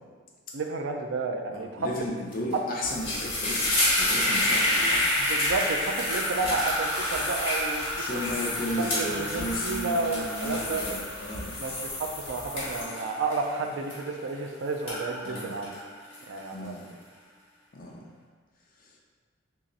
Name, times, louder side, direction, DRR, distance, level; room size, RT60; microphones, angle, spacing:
voice 1, 0.5-1.9 5.2-10.8 11.6-15.7 16.3-16.8, right 3 dB, 85° right, 4 dB, 0.4 m, -32 dB
voice 2, 1.5-5.0 6.4-6.6 7.9-11.5 15.2-15.5 16.5-16.9 17.7-18.0 18.8-19.0, left 1 dB, 45° left, -2 dB, 0.6 m, -34 dB
sound 1, 2.3-2.5 2.8-14.4 14.7-16.7, left 1 dB, 30° left, 1.2 m, -29 dB
sound 2, 2.8-12.8, left 2 dB, 75° left, 1.1 m, -38 dB
3.0 x 2.8 x 3.8 m, 1.5 s
head